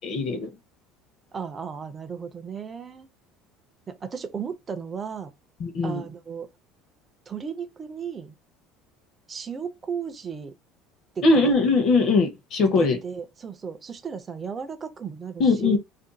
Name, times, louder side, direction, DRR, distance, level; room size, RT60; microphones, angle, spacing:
voice 1, 0.0-0.5 5.6-6.0 11.2-13.0 15.4-15.8, left 3 dB, 40° left, 0.7 m, -21 dB
voice 2, 1.3-3.1 3.9-5.3 5.8-6.5 7.3-8.4 9.3-10.5 11.2-11.5 12.8-15.8, right 6 dB, 20° right, 0.4 m, -35 dB
2.5 x 2.2 x 3.8 m
cardioid pair, 170°, 0 cm